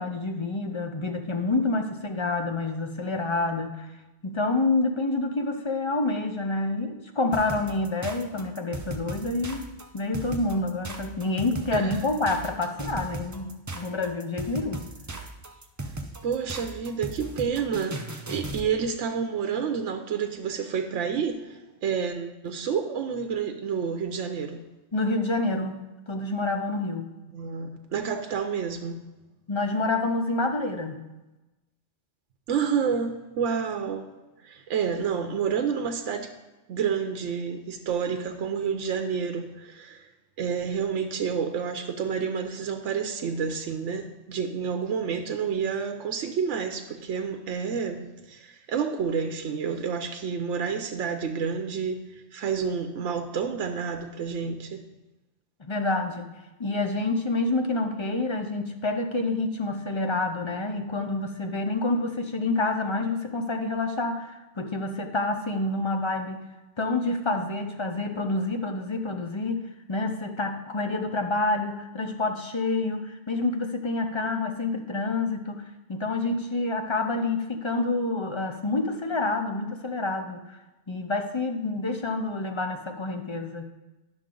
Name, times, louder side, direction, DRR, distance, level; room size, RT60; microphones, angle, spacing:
voice 1, 0.0-3.9 4.2-9.7 9.9-14.8 24.9-27.1 29.5-31.0 55.6-56.3 56.6-66.4 66.8-80.6 80.9-83.7, left 2 dB, 35° left, 5 dB, 0.5 m, -28 dB
sound 1, 7.3-18.7, right 2 dB, 25° right, 0.4 m, -36 dB
voice 2, 16.2-24.6 27.3-29.0 32.5-34.1 34.4-36.3 36.7-40.1 40.4-54.8, right 6 dB, 85° right, 6 dB, 1.0 m, -29 dB
10.5 x 6.2 x 3.8 m, 1.1 s
omnidirectional pair, 1.2 m